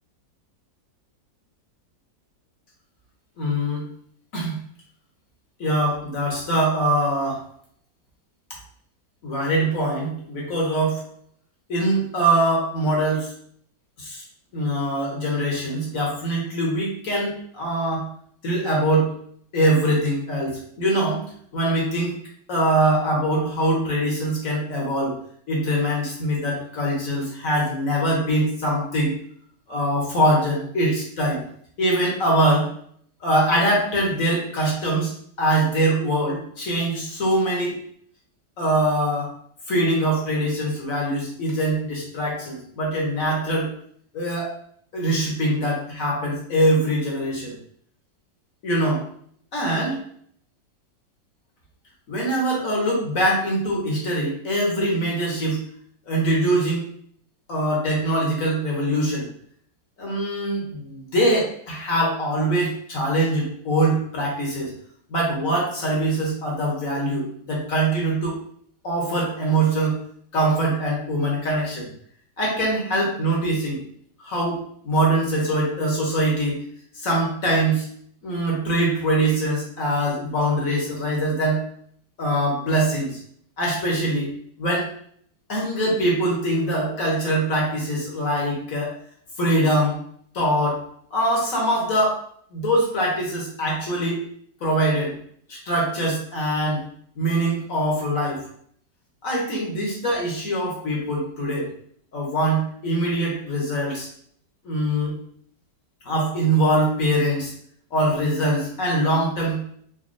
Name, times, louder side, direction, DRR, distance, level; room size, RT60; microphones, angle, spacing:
voice 1, 3.4-3.8 4.3-4.5 5.6-7.4 9.2-11.0 11.7-13.3 14.0-14.2 14.5-18.1 18.4-19.1 19.5-21.2 21.5-22.1 22.5-25.2 25.5-29.1 29.7-31.4 31.8-32.7 33.2-35.1 35.4-37.8 38.6-39.3 39.7-43.7 44.1-44.5 44.9-47.5 48.6-49.0 49.5-50.0 52.1-55.6 56.1-56.8 57.5-59.3 60.0-64.7 65.1-68.3 68.8-69.9 70.3-71.9 72.4-73.8 74.2-74.6 74.8-76.6 77.0-77.9 78.2-81.6 82.2-83.2 83.6-84.3 84.6-84.9 85.5-88.9 89.4-90.0 90.3-90.8 91.1-92.2 92.5-94.2 94.6-95.1 95.5-96.8 97.2-98.4 99.2-101.7 102.1-104.1 104.6-105.1 106.0-107.5 107.9-109.6, right 1 dB, 50° left, -3 dB, 1.7 m, -23 dB
4.3 x 4.1 x 2.7 m, 0.62 s
omnidirectional pair, 1.9 m